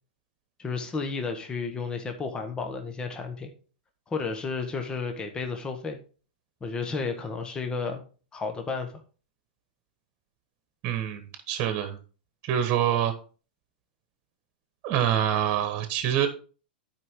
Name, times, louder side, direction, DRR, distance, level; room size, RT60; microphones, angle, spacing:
voice 1, 0.6-3.5 4.1-6.0 6.6-8.0 8.3-8.9, left 4 dB, 15° left, 5 dB, 1.3 m, -32 dB
voice 2, 10.8-12.0 12.4-13.1 14.8-16.3, right 10 dB, 40° right, 8 dB, 1.4 m, -26 dB
11.0 x 5.0 x 3.7 m, 0.38 s
hypercardioid pair, 125°, 5 cm